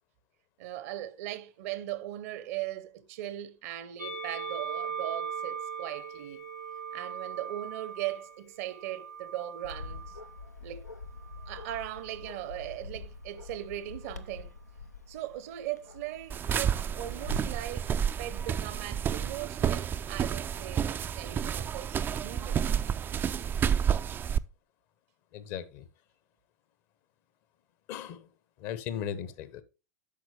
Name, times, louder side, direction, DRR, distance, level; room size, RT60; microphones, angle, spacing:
voice 1, 0.6-6.4 6.9-10.1 10.6-10.8 11.5-14.5 15.1-17.9 18.2-22.7, right 13 dB, 60° right, 0.8 m, -39 dB
Musical instrument, 4.0-10.4 11.2-12.2, right 6 dB, 90° right, 1.0 m, -40 dB
Bark, 9.6-17.6, left 3 dB, 90° left, 0.6 m, -45 dB
sound 1, 16.3-24.4, right 8 dB, 25° right, 0.4 m, -30 dB
voice 2, 25.3-25.9 27.9-28.3 28.6-29.6, left 9 dB, 50° left, 1.0 m, -37 dB
8.6 x 6.2 x 3.2 m
figure-of-eight pair, 85°, 9 cm